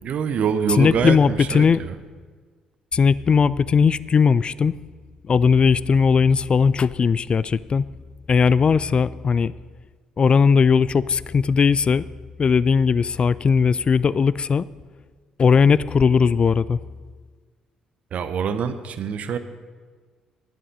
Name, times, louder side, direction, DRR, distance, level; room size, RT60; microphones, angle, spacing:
voice 1, 0.0-1.9 18.1-19.4, right 7 dB, 50° right, 11 dB, 0.8 m, -25 dB
voice 2, 0.8-1.8 2.9-4.7 5.3-7.9 8.3-9.5 10.2-12.0 12.4-14.7 15.4-16.8, left 6 dB, 35° left, 19 dB, 0.3 m, -18 dB
11.0 x 10.5 x 5.3 m, 1.5 s
figure-of-eight pair, 45°, 3 cm